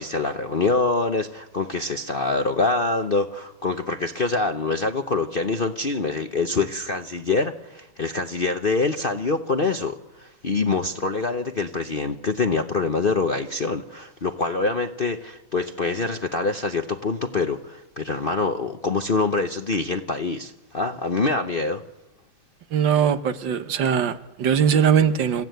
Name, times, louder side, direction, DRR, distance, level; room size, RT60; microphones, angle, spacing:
voice 1, 0.0-21.8, left 3 dB, 45° left, 0.7 m, -25 dB
voice 2, 22.7-25.4, right 8 dB, 75° right, 1.8 m, -20 dB
27.5 x 15.0 x 9.3 m
omnidirectional pair, 2.1 m